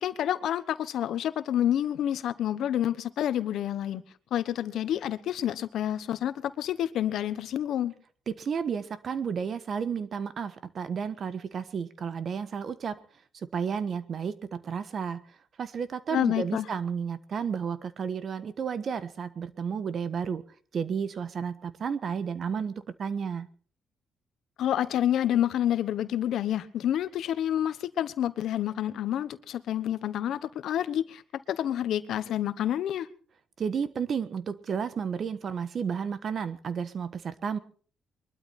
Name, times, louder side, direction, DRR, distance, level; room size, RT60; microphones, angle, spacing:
voice 1, 0.0-4.0 4.3-7.9 16.1-16.7 24.6-31.2 31.5-33.1, left 11 dB, 75° left, 1.1 m, -28 dB
voice 2, 8.3-13.0 13.5-15.2 15.6-20.4 20.7-22.7 23.0-23.5 33.6-37.6, right 6 dB, 50° right, 1.3 m, -32 dB
22.5 x 12.5 x 4.3 m
cardioid pair, 90°, 0 cm